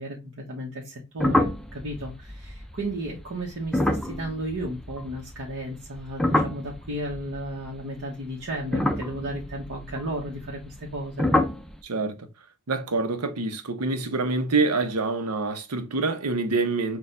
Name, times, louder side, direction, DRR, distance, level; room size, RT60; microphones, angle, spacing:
voice 1, 0.0-11.3, right 1 dB, 60° right, 1.0 m, -34 dB
sound 1, 1.2-5.5 5.8-8.0 8.6-10.9 11.2-11.7, left 1 dB, ahead, 0.4 m, -27 dB
voice 2, 11.8-12.2 12.7-17.0, right 3 dB, 85° right, 0.8 m, -26 dB
6.1 x 2.3 x 2.5 m
head